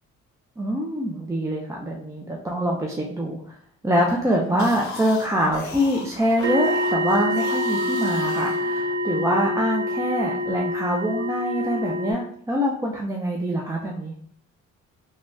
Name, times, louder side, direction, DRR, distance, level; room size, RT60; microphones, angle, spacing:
voice 1, 0.6-3.4 3.8-14.1, equal, 10° right, -1 dB, 0.4 m, -24 dB
sound 1, 4.4-9.2, left 4 dB, 70° left, 0.6 m, -37 dB
sound 2, 6.4-12.1, left 1 dB, 70° right, 1.2 m, -26 dB
3.1 x 2.2 x 2.5 m, 0.62 s
cardioid pair, 90°, 30 cm